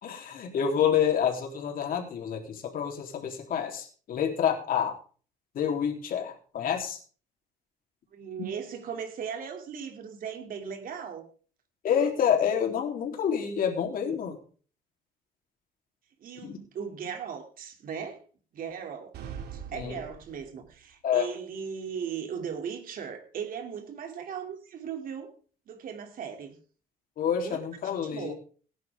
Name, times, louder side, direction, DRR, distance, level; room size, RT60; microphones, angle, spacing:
voice 1, 0.0-5.0 5.5-7.0 11.8-14.4 16.4-16.6 19.7-20.0 21.0-21.3 27.2-28.3, left 8 dB, 55° left, 1 dB, 3.4 m, -28 dB
voice 2, 8.1-11.3 16.2-18.2 18.5-19.1 19.5-25.3 25.7-26.6 27.4-27.6 27.8-28.3, right 7 dB, 55° right, 5 dB, 2.8 m, -38 dB
sound 1, 19.1-20.8, right 8 dB, 75° right, 2.5 m, -42 dB
17.5 x 10.0 x 3.6 m, 0.41 s
cardioid pair, 110°, 17 cm